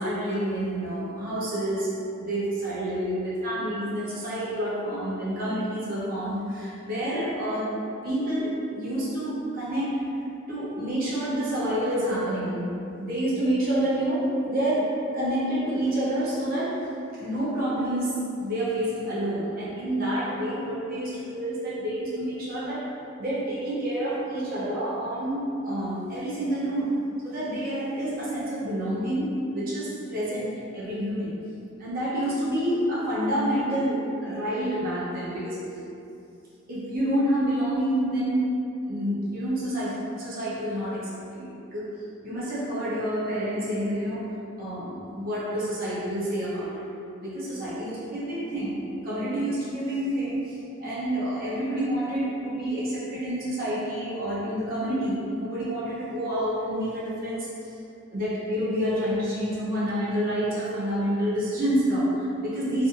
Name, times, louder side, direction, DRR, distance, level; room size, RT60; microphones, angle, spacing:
voice 1, 0.0-10.1 10.5-16.9 17.2-27.0 27.2-31.3 31.8-35.6 36.7-38.5 38.8-46.8 47.2-57.7 58.1-62.9, right 1 dB, 45° right, -9 dB, 0.7 m, -28 dB
2.6 x 2.5 x 2.5 m, 2.6 s
head